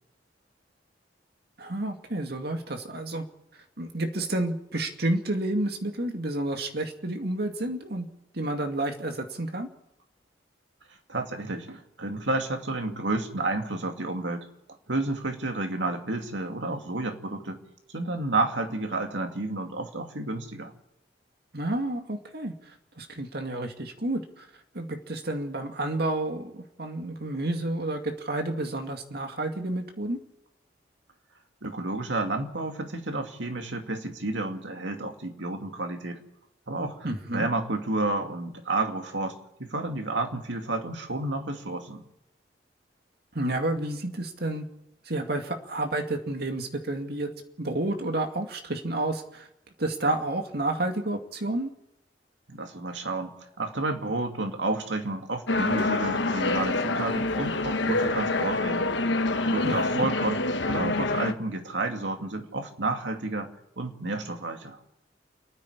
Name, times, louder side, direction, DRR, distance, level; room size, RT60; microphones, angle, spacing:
voice 1, 1.6-3.2 3.8-8.1 8.3-9.7 21.5-22.5 23.0-24.5 24.7-30.2 37.0-37.5 43.3-44.7 45.1-47.3 47.6-49.5 49.8-51.7 59.6-60.1, right 1 dB, 60° right, 5 dB, 2.3 m, -30 dB
voice 2, 11.1-14.5 14.9-17.6 17.9-20.7 31.6-36.2 36.7-37.1 37.3-42.0 52.5-58.9 59.4-60.4 60.7-63.5 63.8-64.8, right 2 dB, 90° right, 4 dB, 2.4 m, -31 dB
sound 1, 55.5-61.3, left 2 dB, 75° left, 1.2 m, -26 dB
28.5 x 9.9 x 9.9 m, 0.85 s
head